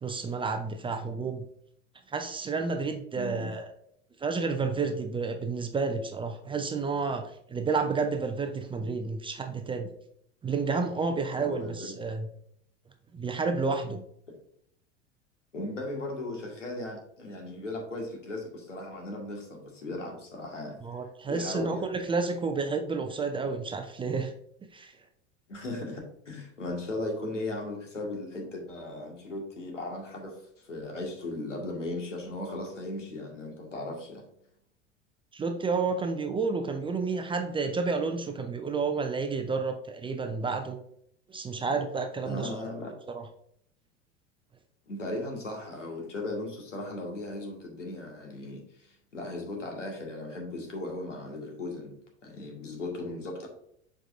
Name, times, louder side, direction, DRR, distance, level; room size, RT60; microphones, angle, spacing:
voice 1, 0.0-1.4 2.1-3.7 4.2-9.9 10.4-12.3 13.1-14.0 20.8-24.3 24.7-24.9 35.3-40.8 41.3-42.5 43.1-43.2, right 4 dB, 15° right, 6 dB, 0.6 m, -30 dB
voice 2, 3.2-3.5 11.3-12.0 15.5-20.8 21.3-21.8 25.5-34.2 42.2-42.9 44.9-53.5, left 2 dB, 80° left, 0 dB, 2.0 m, -37 dB
7.4 x 4.8 x 2.6 m, 0.68 s
figure-of-eight pair, 80°, 36 cm